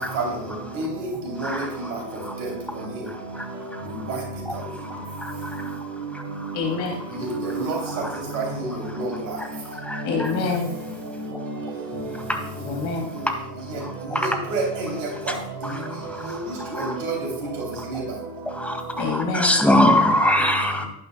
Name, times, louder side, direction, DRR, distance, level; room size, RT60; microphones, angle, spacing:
voice 1, 0.8-1.1 1.4-1.5 7.2-7.8 8.3-8.7 8.9-9.1 14.5-14.6 16.8-17.2 17.9-18.0, right 3 dB, 75° right, 1 dB, 3.6 m, -27 dB
voice 2, 1.4-1.9 2.2-2.3 3.7-3.8 4.9-5.8 6.1-6.5 9.9-10.3 12.3-12.4 13.3-13.4 13.8-14.3 15.3-15.4 15.6-16.9 18.5-20.9, left 1 dB, 5° left, 4 dB, 2.3 m, -24 dB
voice 3, 6.5-6.9 10.0-10.7 12.7-13.1 19.0-19.5, left 4 dB, 65° left, 1 dB, 3.2 m, -26 dB
14.5 x 11.0 x 2.3 m, 0.72 s
hypercardioid pair, 55°, 49 cm